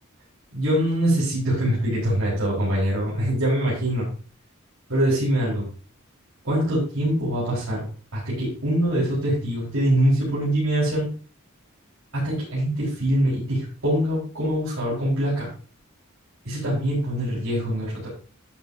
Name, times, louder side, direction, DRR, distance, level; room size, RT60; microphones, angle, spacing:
voice 1, 0.5-4.0 4.9-5.6 6.4-7.8 8.1-11.1 12.1-15.5 16.4-18.1, right 1 dB, 80° right, -9 dB, 5.0 m, -23 dB
11.5 x 8.7 x 2.9 m, 0.41 s
head